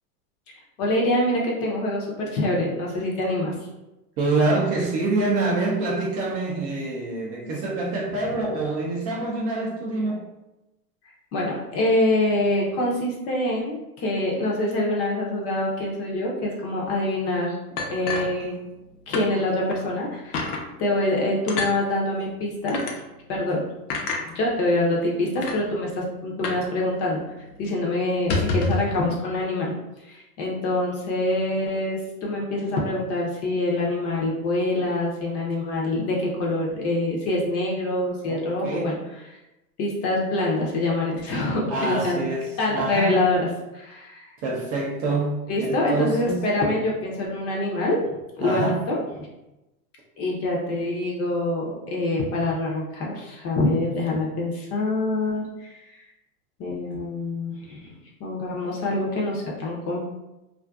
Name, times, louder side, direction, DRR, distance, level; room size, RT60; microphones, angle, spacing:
voice 1, 0.8-3.5 11.3-17.5 17.9-18.6 19.1-20.5 20.8-22.8 23.3-23.6 24.3-27.2 27.6-29.7 30.1-39.0 39.8-42.2 42.6-43.5 43.7-44.3 45.5-48.0 48.4-49.3 50.2-55.8 56.6-57.9 58.2-60.1, left 1 dB, 30° left, -3 dB, 0.6 m, -25 dB
voice 2, 4.2-10.2 38.3-39.0 41.7-43.2 44.4-46.4 48.4-48.8, right 2 dB, 30° right, -2 dB, 0.5 m, -26 dB
sound 1, 17.8-18.8 19.1-19.3 19.7-19.8 20.3-20.6 21.5-21.7 22.7-22.9 23.9-24.2 25.0-25.1 25.4-25.6 26.4-26.7 26.9-27.0 27.4-27.6 28.1-28.9, left 3 dB, 70° left, 0.7 m, -27 dB
2.4 x 2.4 x 2.3 m, 0.97 s
hypercardioid pair, 115°, 46 cm